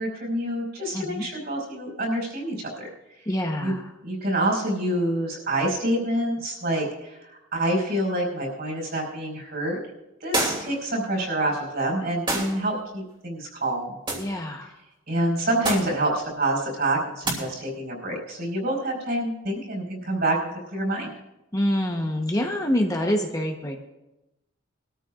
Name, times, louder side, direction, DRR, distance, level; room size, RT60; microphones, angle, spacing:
voice 1, 0.0-2.9 3.6-3.7 4.0-9.8 10.2-13.9 15.1-20.4 20.6-21.1, right 1 dB, 55° right, 0 dB, 4.8 m, -27 dB
voice 2, 0.9-1.3 3.3-3.8 14.2-14.7 21.5-23.8, left 1 dB, 15° left, 2 dB, 1.0 m, -26 dB
sound 1, 10.3-10.8 12.3-12.6 14.1-14.3 15.6-16.0 17.2-17.4, right 2 dB, 25° right, 2.8 m, -26 dB
22.0 x 13.5 x 2.5 m, 0.96 s
head